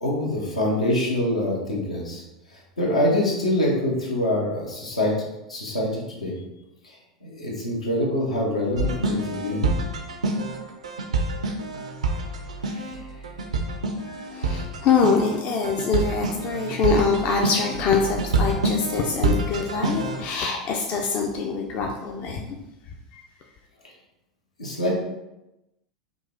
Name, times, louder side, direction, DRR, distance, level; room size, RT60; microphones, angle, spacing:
voice 1, 0.0-2.2 2.8-5.1 5.5-6.3 6.8-7.0 7.2-9.7 12.7-12.9 24.6-24.9, left 1 dB, 85° left, -3 dB, 1.1 m, -25 dB
sound 1, 8.8-20.3, right 2 dB, 80° right, 0.5 m, -27 dB
voice 2, 14.0-22.5 22.9-23.2, left 5 dB, 45° left, 1 dB, 0.5 m, -24 dB
3.8 x 2.5 x 3.8 m, 0.95 s
figure-of-eight pair, 85°, 3 cm